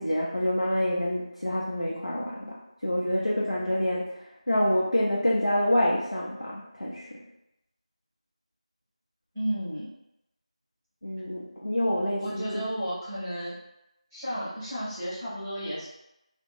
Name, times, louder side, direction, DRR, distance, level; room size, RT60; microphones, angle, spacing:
voice 1, 0.0-7.2 11.0-12.5, left 1 dB, 80° left, -6 dB, 0.6 m, -27 dB
voice 2, 9.3-9.9 12.2-13.5 14.1-15.9, equal, 5° right, -16 dB, 0.8 m, -33 dB
2.5 x 2.0 x 3.1 m, 0.86 s
figure-of-eight pair, 170°, 4 cm